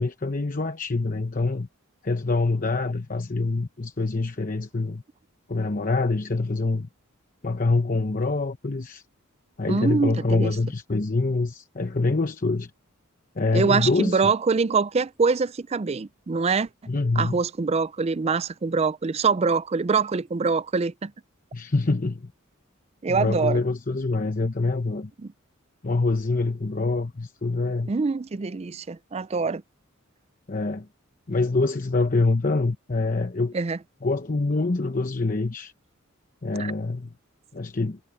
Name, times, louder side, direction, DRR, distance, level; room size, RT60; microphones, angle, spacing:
voice 1, 0.0-1.7 2.0-5.0 5.5-6.9 7.4-9.0 9.6-12.7 13.4-14.3 16.9-17.4 21.5-22.3 23.1-25.1 25.8-27.9 30.5-30.9 31.3-33.5 34.0-35.7 36.4-37.1 37.5-38.0, left 3 dB, 40° left, 0.9 m, -25 dB
voice 2, 9.7-10.5 13.5-16.7 17.2-21.1 23.0-23.6 27.9-29.6 33.5-33.8 36.6-36.7, right 4 dB, 30° right, 0.4 m, -24 dB
head